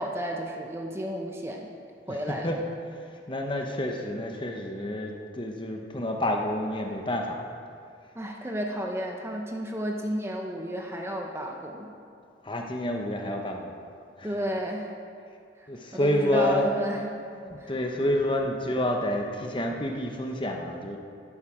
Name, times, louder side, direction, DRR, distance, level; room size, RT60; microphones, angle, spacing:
voice 1, 0.0-1.8 2.1-2.6 8.1-11.9 14.2-14.9 15.6-17.1 17.6-17.7, equal, 15° right, 1 dB, 0.8 m, -32 dB
voice 2, 2.1-7.4 12.4-13.7 14.2-14.4 15.7-21.0, left 1 dB, 25° left, 2 dB, 1.0 m, -29 dB
12.0 x 11.0 x 5.0 m, 2.4 s
head